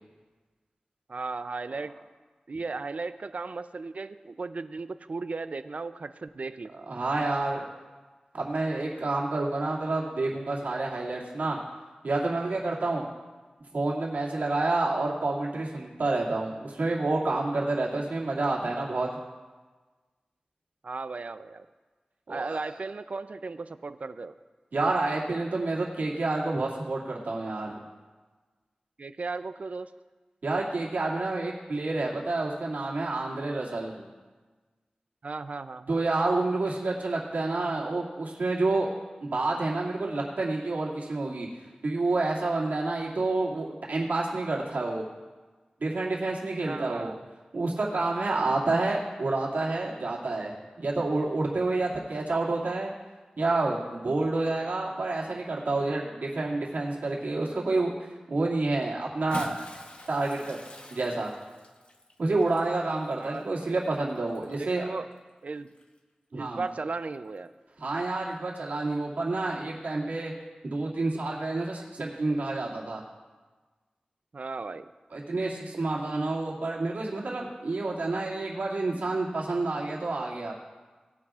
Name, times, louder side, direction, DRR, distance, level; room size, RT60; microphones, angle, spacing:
voice 1, 1.1-1.9 2.5-6.7 20.8-21.7 22.3-24.3 29.0-29.9 35.2-36.0 46.6-47.2 63.2-63.6 64.5-65.1 65.4-65.7 66.3-67.5 74.3-74.9, right 3 dB, 60° right, 12 dB, 0.5 m, -36 dB
voice 2, 6.9-7.6 8.3-11.6 12.0-13.0 13.7-19.1 22.3-22.8 24.7-27.8 30.4-33.9 35.9-38.9 39.2-41.5 41.8-45.1 45.8-47.1 47.5-52.9 53.4-57.9 58.3-59.6 60.1-60.6 60.9-61.3 62.2-64.9 66.3-66.6 67.8-70.3 70.6-73.0 75.1-80.5, right 2 dB, 90° right, -4 dB, 2.4 m, -29 dB
Bathtub (filling or washing) / Splash splatter, 59.1-64.8 65.7-65.8 67.3-67.4, left 2 dB, 50° left, 1.0 m, -46 dB
19.0 x 9.4 x 2.5 m, 1.3 s
wide cardioid pair, 85°, 3 cm